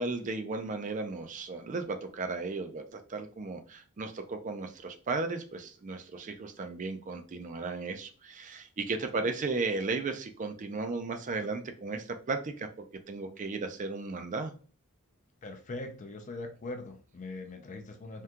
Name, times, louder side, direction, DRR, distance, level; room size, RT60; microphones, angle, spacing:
voice 1, 0.0-14.5, right 3 dB, 35° right, 0.4 m, -35 dB
voice 2, 15.4-18.2, left 2 dB, 35° left, 0.4 m, -41 dB
3.5 x 2.3 x 2.8 m
head